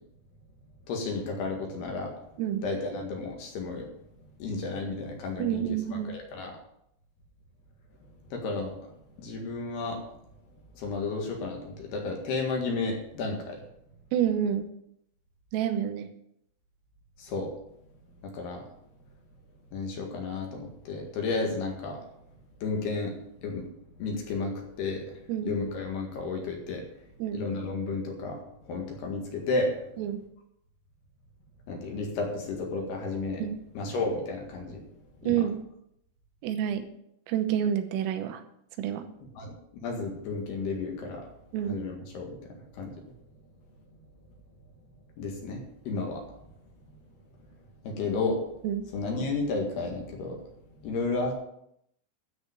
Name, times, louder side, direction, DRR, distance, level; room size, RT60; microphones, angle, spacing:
voice 1, 0.9-2.1 2.6-3.9 4.4-5.6 6.1-6.5 8.3-8.7 9.2-10.0 10.8-13.6 17.2-17.5 18.2-18.6 19.7-22.0 22.6-23.1 23.4-23.6 24.0-25.0 25.4-26.8 27.3-28.4 28.7-29.7 31.7-33.4 33.8-34.8 35.2-35.4 39.4-39.5 39.8-41.2 41.7-42.4 42.8-42.9 45.2-46.2 47.8-48.4 48.9-50.4 50.8-51.3, left 3 dB, 60° left, 1 dB, 3.4 m, -32 dB
voice 2, 5.4-6.1 14.1-14.7 15.5-16.1 25.3-25.5 27.2-27.4 30.0-30.2 33.4-33.6 35.3-35.6 36.4-36.9 37.3-38.4 38.8-39.1 41.5-41.8 48.6-48.8, right 10 dB, 90° right, 8 dB, 3.6 m, -28 dB
13.0 x 5.4 x 8.9 m, 0.74 s
omnidirectional pair, 5.9 m